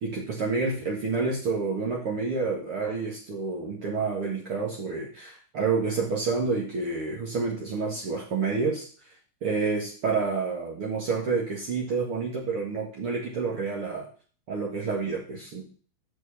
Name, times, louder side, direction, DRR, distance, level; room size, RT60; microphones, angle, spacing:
voice 1, 0.0-8.9 9.4-14.1 14.5-15.6, right 4 dB, 50° right, -2 dB, 2.4 m, -29 dB
6.2 x 6.2 x 7.2 m, 0.41 s
omnidirectional pair, 3.4 m